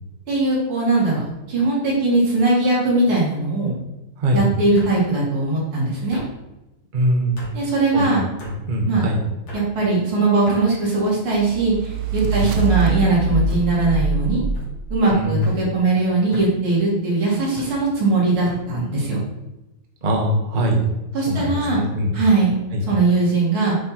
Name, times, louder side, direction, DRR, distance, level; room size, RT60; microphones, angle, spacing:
voice 1, 0.3-1.2 1.5-3.7 4.3-6.2 7.5-8.3 8.9-9.0 9.5-14.4 14.9-19.2 21.1-21.8 22.1-22.5 22.9-23.8, right 3 dB, 80° right, -5 dB, 3.3 m, -20 dB
sound 1, 1.3-1.7 2.1-2.6 3.7-3.8 4.7-5.0 6.1-6.3 7.4-7.5 8.4-8.6 9.5-9.7 10.5-10.6 11.4-11.8 12.6-12.8 13.5-13.6 14.5-14.7 15.4-15.6 16.3-16.5 17.6-17.8 18.4-18.6, left 2 dB, 65° left, 3.0 m, -37 dB
voice 2, 6.9-7.4 7.9-8.1 8.4-9.2 12.2-12.5 15.1-15.5 20.0-20.8 21.2-22.1 22.7-22.8, equal, 30° right, -1 dB, 1.2 m, -22 dB
sound 2, 11.2-15.5, right 4 dB, 65° right, 1.0 m, -24 dB
8.4 x 4.4 x 4.3 m, 0.97 s
omnidirectional pair, 2.3 m